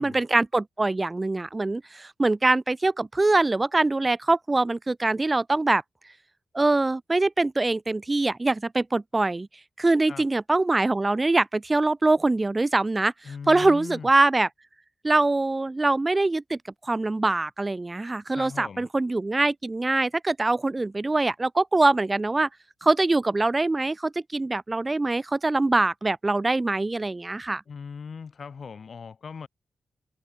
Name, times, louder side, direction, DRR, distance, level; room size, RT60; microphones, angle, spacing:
voice 1, 0.0-5.8 6.5-9.5 9.8-13.1 13.5-14.5 15.0-22.5 22.8-27.6, right 2 dB, 25° right, 1.2 m, -23 dB
voice 2, 13.2-14.1 18.3-18.9 27.7-29.5, left 5 dB, 60° left, 2.5 m, -39 dB
cardioid pair, 75°, 0 cm